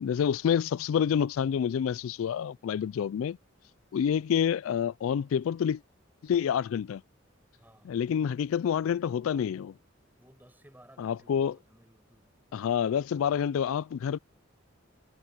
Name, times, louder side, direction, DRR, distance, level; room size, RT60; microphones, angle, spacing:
voice 1, 0.0-3.4 3.9-5.8 6.2-7.0 7.9-9.7 11.0-11.5 12.5-14.2, left 8 dB, 80° left, 0.3 m, -28 dB
voice 2, 7.6-8.0 10.1-13.7, right 1 dB, 10° right, 5.5 m, -59 dB
head